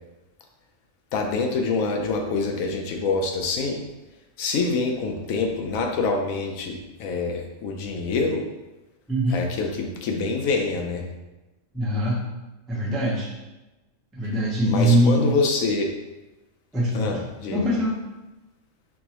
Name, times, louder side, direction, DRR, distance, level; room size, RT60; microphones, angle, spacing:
voice 1, 1.1-3.8 4.4-8.4 9.3-11.1 14.6-15.9 16.9-17.7, left 4 dB, 85° left, 2 dB, 1.0 m, -26 dB
voice 2, 9.1-9.4 11.7-12.2 12.7-13.3 14.1-15.2 16.7-17.2 17.5-18.0, equal, ahead, -6 dB, 0.3 m, -22 dB
4.5 x 2.0 x 2.8 m, 1.1 s
omnidirectional pair, 1.4 m